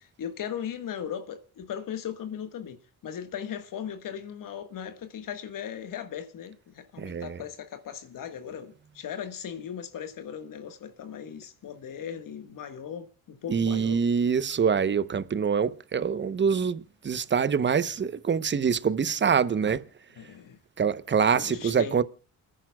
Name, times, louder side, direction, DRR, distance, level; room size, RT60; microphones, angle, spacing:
voice 1, 0.0-14.0 20.2-20.6 21.3-22.0, left 8 dB, 60° left, 1.6 m, -38 dB
voice 2, 7.0-7.4 13.5-19.8 20.8-22.0, right 6 dB, 30° right, 0.9 m, -25 dB
29.0 x 10.0 x 2.3 m
supercardioid pair, 65°, 36 cm